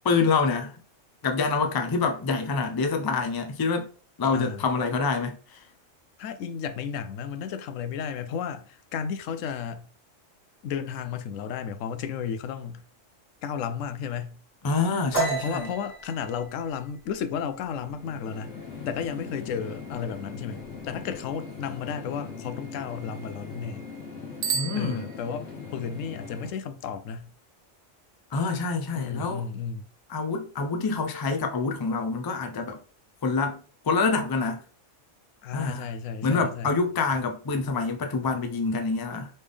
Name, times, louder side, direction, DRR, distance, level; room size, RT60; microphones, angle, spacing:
voice 1, 0.0-0.8 1.2-3.9 4.2-5.6 14.6-15.7 24.5-25.1 28.3-29.5 30.1-32.8 33.2-34.6 35.5-35.9 36.2-39.3, left 4 dB, 35° left, 0.3 m, -26 dB
voice 2, 4.3-4.6 6.2-9.9 10.6-12.8 13.4-14.4 15.4-18.6 18.9-23.9 24.5-27.3 29.0-29.9 35.4-36.7, left 7 dB, 85° left, 1.0 m, -33 dB
sound 1, 15.1-18.6 18.9-19.2 19.6-20.1 20.4-21.2, right 3 dB, 10° left, 1.3 m, -33 dB
sound 2, 17.5-26.5, left 5 dB, 60° left, 1.4 m, -41 dB
Bicycle bell, 24.4-25.7, right 6 dB, 60° right, 0.9 m, -32 dB
4.1 x 3.4 x 3.4 m
omnidirectional pair, 1.3 m